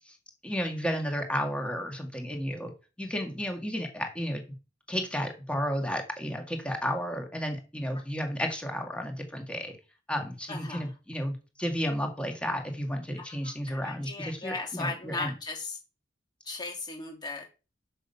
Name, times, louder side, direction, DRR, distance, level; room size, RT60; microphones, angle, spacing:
voice 1, 0.4-2.7 3.0-4.4 4.9-9.8 10.1-15.3, equal, 5° left, 3 dB, 1.8 m, -32 dB
voice 2, 10.5-10.8 13.7-15.7 16.5-17.5, left 3 dB, 20° left, 2 dB, 2.6 m, -36 dB
6.9 x 6.3 x 5.5 m, 0.31 s
head